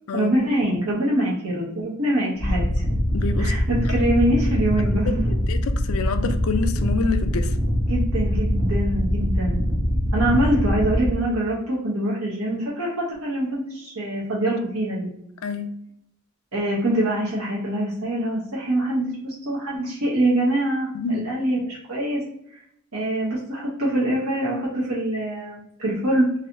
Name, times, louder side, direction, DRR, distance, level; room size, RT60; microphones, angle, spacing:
voice 1, 0.1-2.8 3.4-5.2 7.9-9.6 9.9-15.1 16.5-22.2 22.9-26.3, right 1 dB, 80° right, 1.0 m, -24 dB
sound 1, 2.4-11.1, equal, 50° right, 1.1 m, -23 dB
voice 2, 3.1-3.8 5.1-7.5 15.4-15.7 20.9-21.3, left 4 dB, 70° left, 0.4 m, -27 dB
3.2 x 2.7 x 2.6 m
head